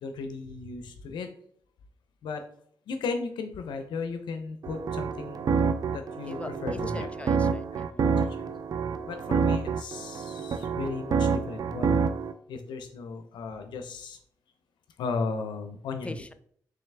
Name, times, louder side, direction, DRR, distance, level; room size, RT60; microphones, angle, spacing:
voice 1, 0.0-1.3 2.2-2.4 2.9-7.1 8.2-8.4 9.1-12.0 12.5-14.2 15.0-16.3, left 4 dB, 85° left, 0.4 m, -36 dB
sound 1, 4.6-12.3, right 5 dB, 55° right, 0.4 m, -28 dB
voice 2, 6.2-8.1 16.0-16.3, left 2 dB, 15° left, 0.4 m, -41 dB
3.7 x 3.3 x 3.2 m
cardioid pair, 60°, 8 cm